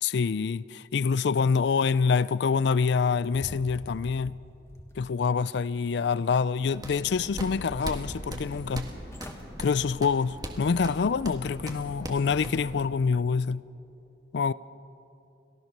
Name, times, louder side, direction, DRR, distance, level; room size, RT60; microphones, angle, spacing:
voice 1, 0.0-4.3 5.0-8.9 9.6-13.6 14.3-14.5, left 5 dB, 60° left, 0.4 m, -26 dB
sound 1, 3.0-5.0 5.5-6.3 6.7-7.5 8.0-8.1 8.8-8.9 9.1-9.4 9.9-10.2 10.6-10.7, equal, 15° left, 1.4 m, -47 dB
sound 2, 6.6-12.9, right 1 dB, 20° right, 1.7 m, -39 dB
30.0 x 14.5 x 6.7 m
head